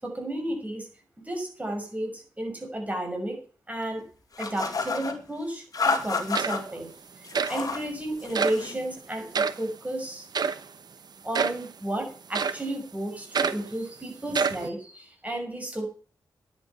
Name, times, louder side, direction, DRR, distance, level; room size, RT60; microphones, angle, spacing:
voice 1, 0.0-0.9 1.3-3.4 3.7-4.0 4.4-6.9 7.5-10.3 11.2-15.9, right 1 dB, 20° right, 2 dB, 6.2 m, -32 dB
sound 1, 4.4-5.2 5.7-6.6 7.2-7.9 8.2-8.8, left 4 dB, 55° left, 2.2 m, -29 dB
sound 2, 6.0-6.1 6.3-6.8 7.3-7.6 8.3-8.6 9.3-9.6 10.3-10.6 11.3-11.7 12.3-12.7 13.3-13.7 14.3-14.7, right 5 dB, 65° right, 1.0 m, -27 dB
10.5 x 8.6 x 7.0 m, 0.41 s
wide cardioid pair, 95°, 7 cm